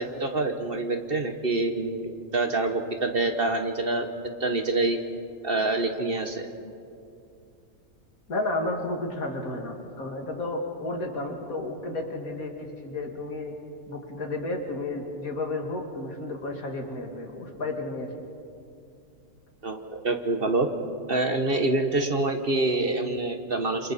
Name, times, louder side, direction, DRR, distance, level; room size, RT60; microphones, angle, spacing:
voice 1, 0.0-4.1 4.4-5.0 5.4-6.5 19.6-20.7 21.1-23.9, right 2 dB, 45° right, 6 dB, 1.4 m, -26 dB
voice 2, 8.3-13.5 13.9-18.1, left 2 dB, 75° left, 2 dB, 2.7 m, -32 dB
28.0 x 26.0 x 4.3 m, 2.5 s
omnidirectional pair, 1.5 m